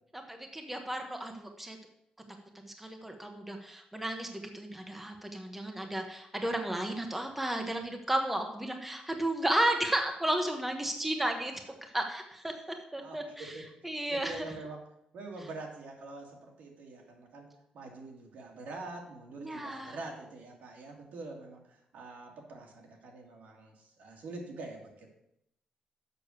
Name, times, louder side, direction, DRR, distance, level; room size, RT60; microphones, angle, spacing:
voice 1, 0.1-1.8 2.6-12.5 12.9-14.5 19.4-20.0, right 1 dB, 5° right, 4 dB, 0.9 m, -33 dB
voice 2, 14.1-14.8 15.1-17.5 17.7-21.6 21.9-25.1, right 3 dB, 80° right, 1 dB, 2.1 m, -45 dB
6.8 x 6.1 x 6.4 m, 0.79 s
wide cardioid pair, 150°, 3 cm